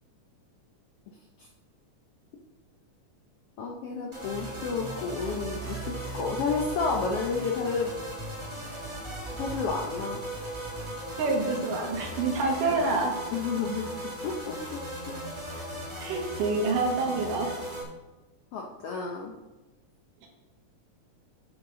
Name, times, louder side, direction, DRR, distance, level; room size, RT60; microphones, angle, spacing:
voice 1, 3.6-7.9 9.4-10.2 13.3-13.9 14.2-15.2 18.5-19.3, left 5 dB, 80° left, 0 dB, 1.3 m, -31 dB
sound 1, 4.1-17.8, right 1 dB, 20° right, 0.8 m, -37 dB
voice 2, 11.2-13.1 16.0-17.6, right 3 dB, 85° right, 1 dB, 3.2 m, -27 dB
9.9 x 8.0 x 3.8 m, 1.1 s
omnidirectional pair, 3.7 m